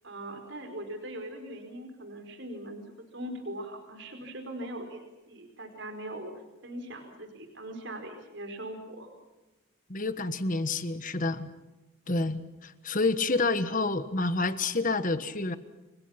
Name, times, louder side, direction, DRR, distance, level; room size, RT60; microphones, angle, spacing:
voice 1, 0.0-2.9 3.1-6.3 6.6-9.1, right 1 dB, 60° right, 5 dB, 4.7 m, -40 dB
voice 2, 9.9-11.5 12.1-15.6, left 3 dB, 40° left, 12 dB, 1.4 m, -28 dB
29.5 x 25.0 x 5.9 m, 1.1 s
head